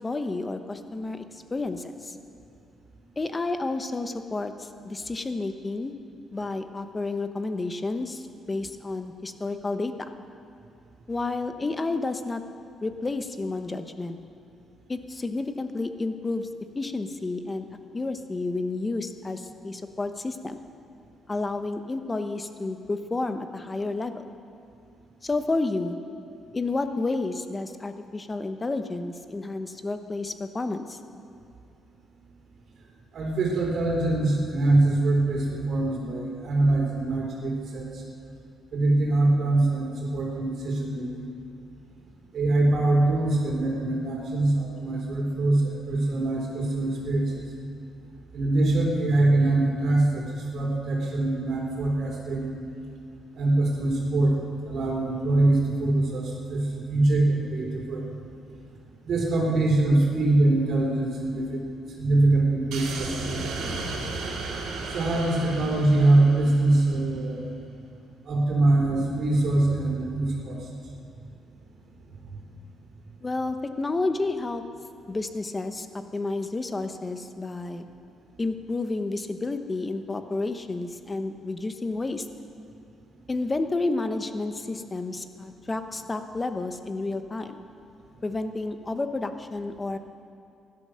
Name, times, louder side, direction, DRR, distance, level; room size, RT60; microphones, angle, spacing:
voice 1, 0.0-2.1 3.2-5.9 6.3-10.1 11.1-12.4 12.8-14.2 14.9-16.5 16.7-17.7 17.9-20.7 21.3-24.2 25.2-26.0 26.5-31.0 73.2-74.6 75.1-75.9 76.1-77.8 78.4-82.3 83.3-87.6 88.2-90.0, left 3 dB, 25° left, 8 dB, 1.0 m, -30 dB
voice 2, 33.1-38.0 38.7-41.1 42.3-47.4 48.3-52.5 53.4-54.4 54.7-58.1 59.0-61.7 62.0-63.5 64.9-67.5 68.3-70.7, right 2 dB, 60° right, -1 dB, 3.6 m, -23 dB
sound 1, 62.7-67.1, right 3 dB, 85° right, 2.5 m, -34 dB
16.5 x 11.5 x 6.4 m, 2.5 s
cardioid pair, 90°, 0 cm